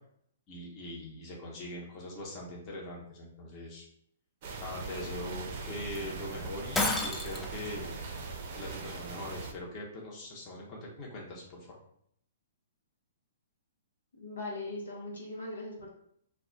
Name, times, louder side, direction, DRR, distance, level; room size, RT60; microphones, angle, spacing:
voice 1, 0.5-3.9 4.6-7.9 8.5-11.8, left 1 dB, 30° left, -3 dB, 0.9 m, -42 dB
sound 1, 4.4-9.5, right 4 dB, 45° right, 0.5 m, -40 dB
Shatter, 6.7-7.6, left 2 dB, 10° left, 0.4 m, -30 dB
voice 2, 14.2-15.9, left 2 dB, 80° left, -2 dB, 0.8 m, -39 dB
2.3 x 2.3 x 3.8 m, 0.69 s
hypercardioid pair, 125°, 0 cm